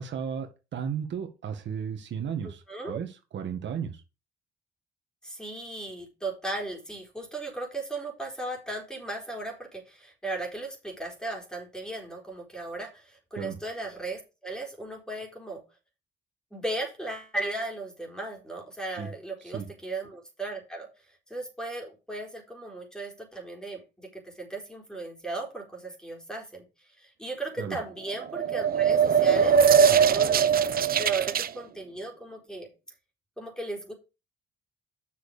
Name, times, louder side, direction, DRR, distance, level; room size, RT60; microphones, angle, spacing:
voice 1, 0.0-4.0 13.4-13.6 19.0-19.1 19.4-19.7 27.6-27.8, right 7 dB, 65° right, 6 dB, 1.8 m, -34 dB
voice 2, 2.4-3.0 5.2-15.6 16.5-20.9 21.3-32.7 33.4-33.9, right 2 dB, 5° left, 1 dB, 4.3 m, -36 dB
sound 1, 28.2-31.5, right 7 dB, 50° right, 0.7 m, -21 dB
8.1 x 6.4 x 5.1 m, 0.29 s
cardioid pair, 90°, 20 cm